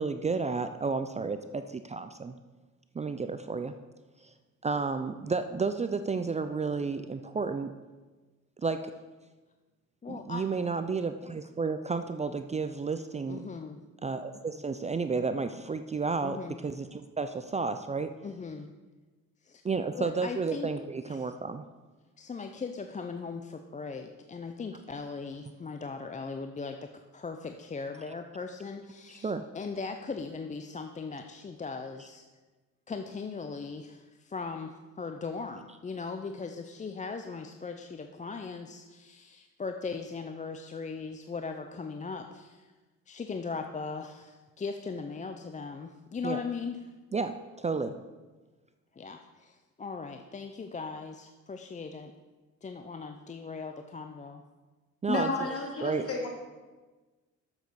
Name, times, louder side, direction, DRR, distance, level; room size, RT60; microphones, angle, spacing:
voice 1, 0.0-2.4 2.9-3.8 4.2-4.3 4.6-7.7 8.6-8.9 10.1-13.4 14.0-18.1 19.6-21.6 29.2-29.4 46.2-46.4 47.1-48.0 55.0-55.3 55.8-56.1, right 4 dB, 25° right, 9 dB, 0.4 m, -32 dB
voice 2, 10.0-10.6 13.3-13.8 16.2-16.6 18.2-18.7 19.4-19.6 19.9-20.7 21.1-21.3 22.2-32.2 32.9-42.7 43.1-46.8 49.0-52.1 52.6-54.4, left 4 dB, 25° left, 6 dB, 0.6 m, -39 dB
voice 3, 55.1-56.3, left 2 dB, 50° left, 1 dB, 2.3 m, -31 dB
7.2 x 6.7 x 6.3 m, 1.3 s
cardioid pair, 90°, 30 cm